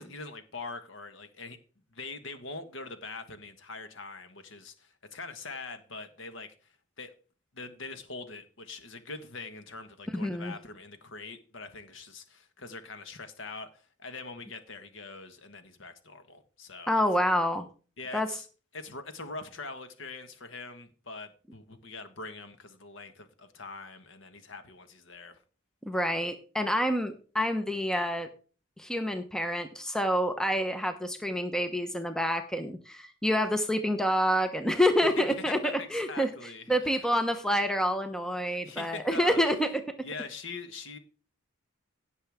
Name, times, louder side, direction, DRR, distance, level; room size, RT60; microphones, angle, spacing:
voice 1, 0.0-1.6 1.9-6.5 7.0-7.1 7.5-17.0 18.0-18.5 18.7-25.4 35.0-37.1 38.5-39.4 40.0-41.0, left 3 dB, 65° left, 1.5 m, -43 dB
voice 2, 10.1-10.5 16.9-17.7 18.1-18.3 25.9-28.3 28.8-36.3 36.7-39.7, equal, 5° left, 0.8 m, -27 dB
16.5 x 6.7 x 3.6 m
head